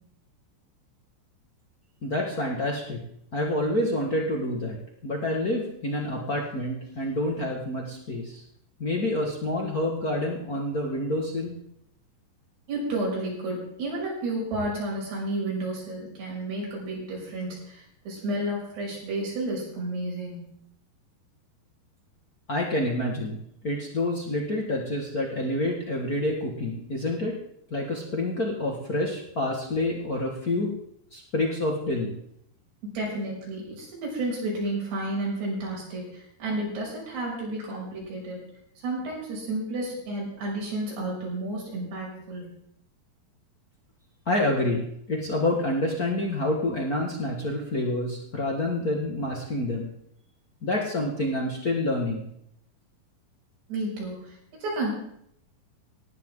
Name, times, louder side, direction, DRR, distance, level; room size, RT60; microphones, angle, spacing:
voice 1, 2.0-3.0 3.3-4.8 5.0-8.4 8.8-11.5 22.5-27.4 27.7-30.7 31.1-32.1 44.2-49.9 50.6-52.3, left 1 dB, 80° left, -1 dB, 0.8 m, -28 dB
voice 2, 12.7-20.4 32.9-38.4 38.8-42.5 53.7-54.9, right 1 dB, 65° right, -3 dB, 8.5 m, -31 dB
19.0 x 15.5 x 3.9 m, 0.71 s
omnidirectional pair, 5.1 m